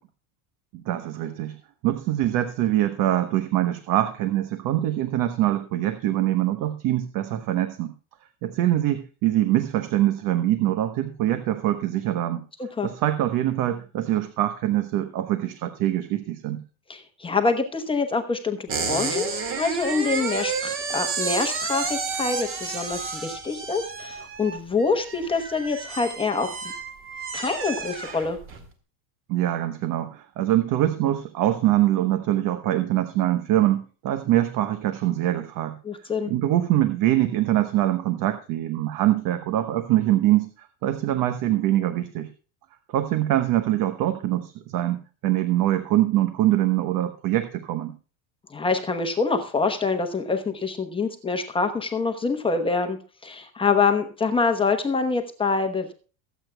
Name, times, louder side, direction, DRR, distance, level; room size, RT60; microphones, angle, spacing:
voice 1, 0.9-1.6 1.8-7.9 8.4-12.4 12.8-16.6 29.3-35.8 36.3-42.3 42.9-47.9, right 13 dB, 50° right, 9 dB, 1.1 m, -24 dB
voice 2, 12.6-12.9 16.9-26.6 27.3-28.4 35.8-36.3 48.5-55.9, left 4 dB, 10° left, 5 dB, 1.0 m, -25 dB
sound 1, 18.7-28.7, right 5 dB, 30° right, 2.1 m, -31 dB
23.0 x 8.3 x 2.3 m, 0.37 s
cardioid pair, 155°, 42 cm